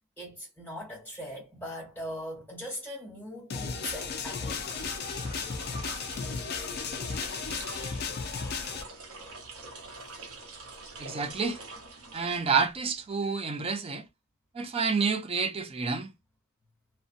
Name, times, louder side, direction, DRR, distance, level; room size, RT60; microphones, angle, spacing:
voice 1, 0.2-4.8, equal, 10° left, 1.4 m, -40 dB
sound 1, 3.5-8.8, left 5 dB, 45° left, 0.4 m, -34 dB
sound 2, 4.6-12.9, right 3 dB, 85° right, 0.7 m, -45 dB
voice 2, 11.0-11.6 12.1-14.0 14.5-16.1, right 5 dB, 25° right, 0.4 m, -29 dB
2.6 x 2.1 x 2.4 m
head